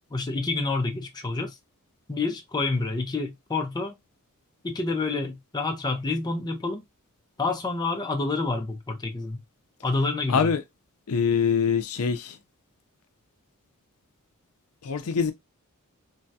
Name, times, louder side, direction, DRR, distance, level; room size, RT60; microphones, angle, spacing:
voice 1, 0.1-1.6 2.1-4.0 4.6-6.8 7.4-9.4 9.8-10.5, left 3 dB, 20° left, 0.5 m, -28 dB
voice 2, 10.3-10.6 11.1-12.3 14.8-15.3, left 6 dB, 80° left, 0.5 m, -24 dB
3.1 x 2.3 x 2.6 m
head